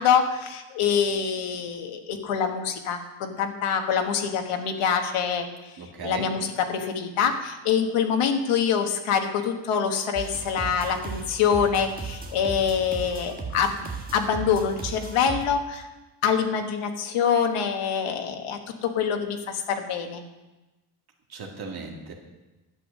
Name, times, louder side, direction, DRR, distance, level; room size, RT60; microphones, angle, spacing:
voice 1, 0.0-5.5 6.0-15.9 16.2-20.2, left 7 dB, 85° left, 4 dB, 1.5 m, -25 dB
voice 2, 5.8-6.3 21.3-22.1, right 4 dB, 50° right, 0 dB, 2.2 m, -37 dB
sound 1, 10.1-15.5, right 4 dB, 15° right, 1.4 m, -36 dB
12.0 x 8.1 x 6.4 m, 1.1 s
cardioid pair, 160°, 49 cm